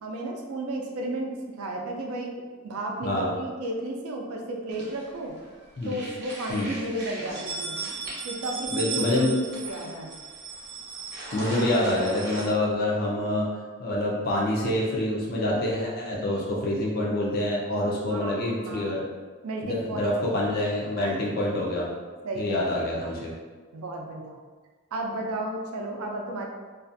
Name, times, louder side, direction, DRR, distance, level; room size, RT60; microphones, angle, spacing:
voice 1, 0.0-2.3 2.6-5.3 5.8-7.8 8.2-10.1 16.2-16.5 18.1-19.0 19.4-20.4 21.0-21.6 22.2-22.7 23.7-24.4 24.9-26.4, right 1 dB, 80° right, 1 dB, 0.4 m, -33 dB
sound 1, 4.7-5.5 5.8-12.5, right 4 dB, 50° right, 0.7 m, -36 dB
voice 2, 8.7-9.3 11.3-13.5 13.8-19.0 19.6-21.9 22.4-23.3, left 1 dB, 45° left, -3 dB, 0.4 m, -26 dB
2.4 x 2.3 x 2.5 m, 1.4 s
head